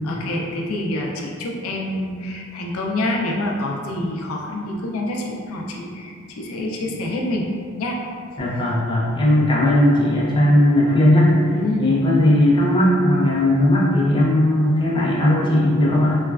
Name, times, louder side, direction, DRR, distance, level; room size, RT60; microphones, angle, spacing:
voice 1, 0.0-7.5 7.8-8.0 11.5-12.0, left 1 dB, 90° left, -1 dB, 0.4 m, -26 dB
voice 2, 8.4-11.4 11.8-16.2, left 1 dB, 25° left, -6 dB, 0.5 m, -17 dB
3.1 x 2.2 x 2.3 m, 2.2 s
head